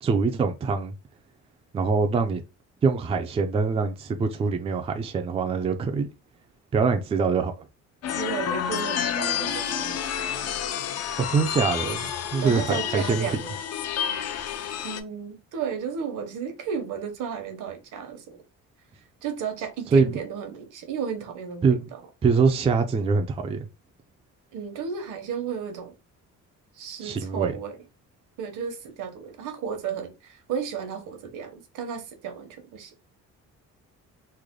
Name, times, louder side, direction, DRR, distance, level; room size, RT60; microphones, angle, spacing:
voice 1, 0.0-0.9 1.7-2.4 2.8-6.1 6.7-7.5 11.3-13.4 19.9-20.1 21.6-21.9 22.2-23.7 27.0-27.5, right 4 dB, 20° right, 0.3 m, -24 dB
sound 1, 8.0-15.0, left 8 dB, 55° left, 0.5 m, -29 dB
voice 2, 8.2-10.3 12.4-13.6 14.8-18.4 19.2-22.0 24.5-25.9 26.7-27.8 28.4-32.9, right 7 dB, 75° right, 1.0 m, -33 dB
3.2 x 2.1 x 3.6 m
cardioid pair, 145°, 31 cm